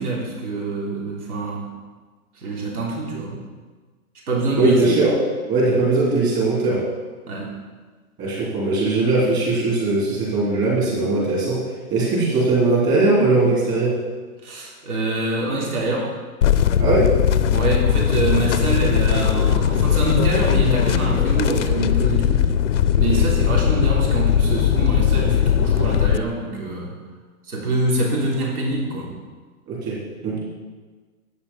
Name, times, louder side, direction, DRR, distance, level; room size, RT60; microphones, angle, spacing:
voice 1, 0.0-1.7 2.4-3.4 4.3-4.9 7.3-7.5 14.4-16.1 17.5-22.5 22.9-26.9 27.5-29.1, right 2 dB, 70° right, -2 dB, 3.6 m, -25 dB
voice 2, 4.6-5.1 5.5-6.8 8.2-11.6 11.9-13.9 16.8-17.1 23.1-23.2 29.7-30.4, right 3 dB, 20° right, -6 dB, 3.4 m, -20 dB
sound 1, 16.4-26.2, left 9 dB, 55° left, 0.7 m, -19 dB
10.5 x 8.9 x 5.6 m, 1.4 s
hypercardioid pair, 165°, 45 cm